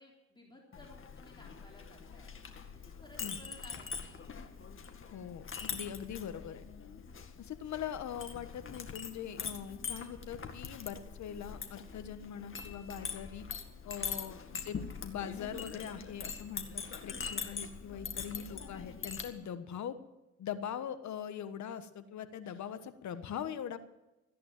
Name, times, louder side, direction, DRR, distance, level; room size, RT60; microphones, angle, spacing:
voice 1, 0.0-2.3 2.7-4.2 17.8-18.0 19.5-19.6, left 1 dB, 15° left, -2 dB, 3.6 m, -58 dB
Chink clink, 0.7-19.3, left 6 dB, 45° left, 2.0 m, -43 dB
voice 2, 5.1-6.6 7.4-13.5 13.8-20.0 20.4-23.8, left 8 dB, 70° left, 11 dB, 1.4 m, -42 dB
15.0 x 10.0 x 7.4 m, 1.0 s
cardioid pair, 90°, 30 cm